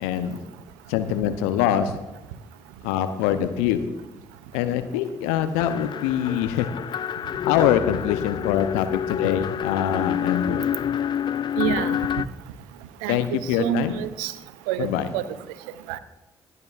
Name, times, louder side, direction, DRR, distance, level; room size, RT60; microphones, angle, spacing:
voice 1, 0.0-0.4 0.9-1.9 2.8-3.9 4.5-6.7 7.5-10.7 13.1-13.9 14.8-15.1, left 10 dB, 75° left, 10 dB, 0.7 m, -24 dB
sound 1, 5.6-12.3, left 9 dB, 40° left, 0.4 m, -28 dB
voice 2, 11.6-12.0 13.0-14.3 14.7-14.9 15.1-15.3 15.9-16.0, right 12 dB, 75° right, 14 dB, 0.6 m, -27 dB
25.0 x 9.5 x 2.5 m, 1.0 s
figure-of-eight pair, 40°, 12 cm